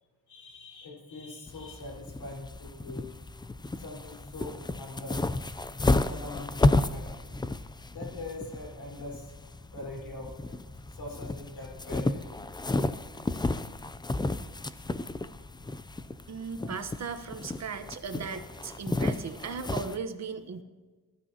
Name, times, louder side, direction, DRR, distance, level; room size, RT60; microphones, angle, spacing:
voice 1, 0.3-3.1 3.8-5.2 6.1-7.2 7.9-9.3 9.7-10.6 11.0-12.4 16.6-16.8, left 2 dB, 85° left, 0 dB, 4.8 m, -43 dB
sound 1, 1.5-20.0, left 2 dB, 15° left, 0.5 m, -32 dB
voice 2, 16.3-20.6, right 5 dB, 50° right, 8 dB, 1.2 m, -37 dB
21.0 x 12.5 x 2.9 m, 1.3 s
cardioid pair, 115°, 35 cm